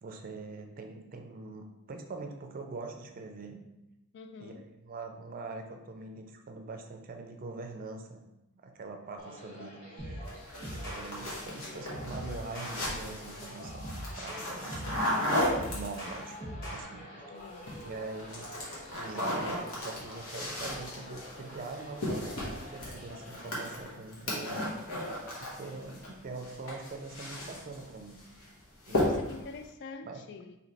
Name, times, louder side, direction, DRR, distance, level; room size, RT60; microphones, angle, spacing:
voice 1, 0.0-3.6 4.4-8.2 8.6-10.3 10.7-15.0 15.7-16.4 16.7-17.4 17.8-18.5 18.9-24.7 25.4-28.2 28.9-29.3 30.0-30.2, right 3 dB, 40° right, 0.4 m, -43 dB
voice 2, 4.1-4.6 17.3-17.7 28.9-30.6, left 4 dB, 55° left, 0.3 m, -46 dB
sound 1, 9.2-23.8, left 1 dB, 35° left, 0.7 m, -48 dB
sound 2, 10.0-10.3 10.6-11.1 11.9-12.8 13.6-15.0 15.3-16.8, equal, 15° left, 1.3 m, -40 dB
sound 3, 10.3-16.3 17.4-17.9 18.2-26.1 26.4-27.8 28.2-28.5 28.8-29.5, left 1 dB, 75° left, 1.2 m, -35 dB
3.1 x 2.8 x 4.0 m
head